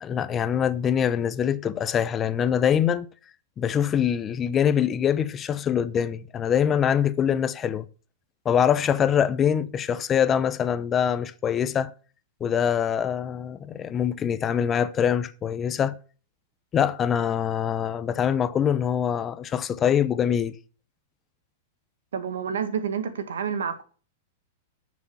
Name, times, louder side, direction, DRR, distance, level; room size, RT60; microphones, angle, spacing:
voice 1, 0.0-3.1 3.6-7.9 8.4-11.9 12.4-16.0 16.7-20.6, left 8 dB, 25° left, 0.7 m, -24 dB
voice 2, 22.1-23.8, right 7 dB, 90° right, 1.9 m, -29 dB
11.5 x 6.4 x 7.1 m
hypercardioid pair, 135°, 0 cm